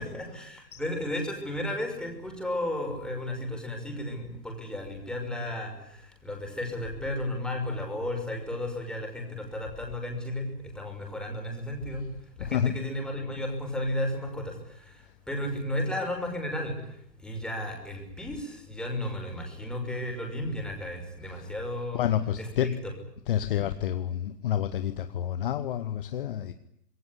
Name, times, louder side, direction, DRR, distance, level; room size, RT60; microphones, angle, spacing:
voice 1, 0.0-22.1 22.4-22.9, left 1 dB, ahead, 1 dB, 5.8 m, -34 dB
voice 2, 12.4-12.7 21.3-21.5 21.9-22.7 23.3-26.5, left 11 dB, 35° left, 11 dB, 1.3 m, -29 dB
26.5 x 22.0 x 10.0 m, 0.74 s
figure-of-eight pair, 130°, 48 cm